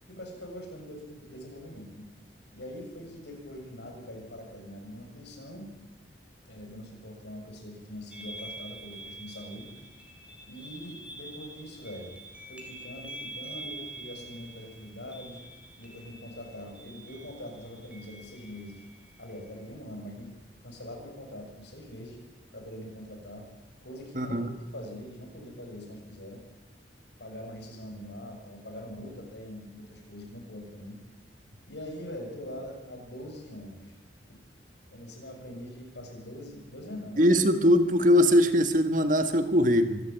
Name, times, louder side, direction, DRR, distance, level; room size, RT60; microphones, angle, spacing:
voice 1, 0.1-2.1 2.5-5.7 6.5-9.7 10.5-12.2 12.5-15.4 15.8-18.8 19.2-20.4 20.6-22.2 22.5-23.5 23.8-26.4 27.2-31.0 31.7-33.9 34.9-37.4, left 1 dB, 80° left, 2 dB, 6.9 m, -43 dB
sound 1, 8.1-19.5, right 2 dB, 5° right, 4.1 m, -46 dB
voice 2, 24.2-24.5 37.2-40.0, equal, 45° right, 8 dB, 1.8 m, -21 dB
25.5 x 14.0 x 9.0 m, 1.1 s
head